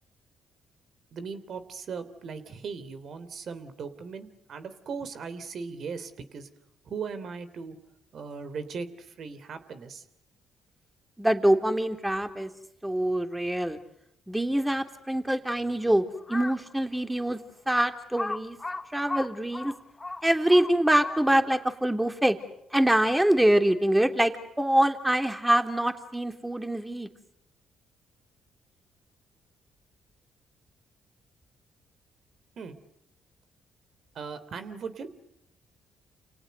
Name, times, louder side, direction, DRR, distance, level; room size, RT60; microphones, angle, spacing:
voice 1, 1.1-6.5 6.9-7.8 8.1-10.0 32.6-32.8 34.1-35.1, right 5 dB, 60° right, 11 dB, 3.3 m, -38 dB
voice 2, 11.2-12.5 12.8-13.8 14.3-16.0 16.3-17.4 17.7-18.6 18.9-19.7 20.2-22.4 22.7-27.1, right 1 dB, 10° right, 7 dB, 3.3 m, -24 dB
Crow, 16.2-16.7 17.3-17.4 18.1-21.5, left 2 dB, 25° left, 1.9 m, -36 dB
29.5 x 29.5 x 6.7 m, 0.77 s
hypercardioid pair, 45°, 0 cm